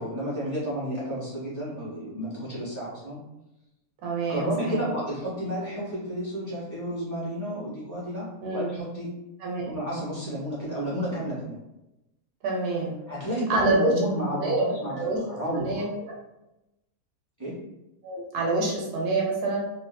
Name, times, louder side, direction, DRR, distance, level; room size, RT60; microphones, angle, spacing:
voice 1, 0.0-3.2 4.3-9.1 9.6-11.6 13.1-15.8 17.4-17.6, equal, 15° right, -9 dB, 0.9 m, -31 dB
voice 2, 4.0-4.8 8.4-8.7 9.4-9.8 12.4-13.0 13.5-13.9 14.3-14.7 14.9-15.2 15.5-16.2 18.0-19.6, right 3 dB, 85° right, -2 dB, 1.2 m, -27 dB
2.7 x 2.5 x 2.2 m, 0.94 s
omnidirectional pair, 1.6 m